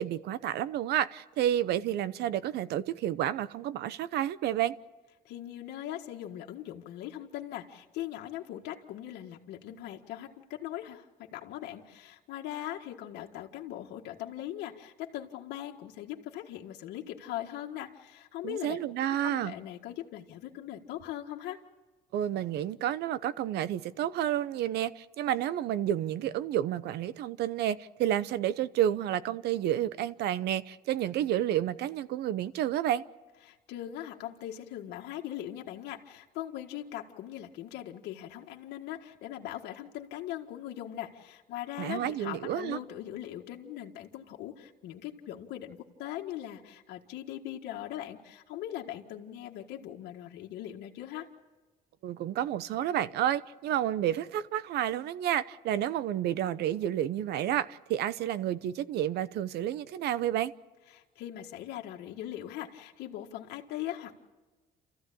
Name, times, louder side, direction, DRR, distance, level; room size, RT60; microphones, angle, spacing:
voice 1, 0.0-4.8 18.4-19.5 22.1-33.0 41.8-42.8 52.0-60.5, right 11 dB, 75° right, 0.9 m, -30 dB
voice 2, 5.3-18.8 19.2-21.6 33.4-51.3 60.9-64.1, left 12 dB, 85° left, 1.8 m, -40 dB
29.0 x 14.5 x 8.6 m
cardioid pair, 110°, 17 cm